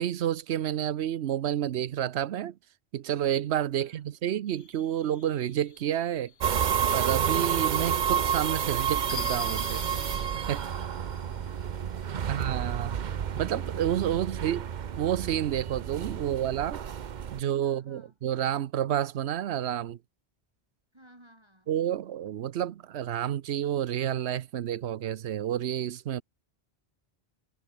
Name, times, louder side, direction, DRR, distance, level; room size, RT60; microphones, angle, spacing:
voice 1, 0.0-2.5 2.9-6.3 6.9-9.8 10.5-10.6 12.3-13.0 13.4-14.7 15.0-16.8 17.3-20.0 21.7-26.2, right 11 dB, 90° right, 1.0 m, -29 dB
voice 2, 3.7-4.1 17.3-18.2 20.9-21.7, right 1 dB, 25° right, 4.5 m, -58 dB
sound 1, 4.5-12.0, left 7 dB, 70° left, 1.3 m, -46 dB
sound 2, 6.4-17.4, right 8 dB, 50° right, 0.7 m, -30 dB
omnidirectional pair, 1.1 m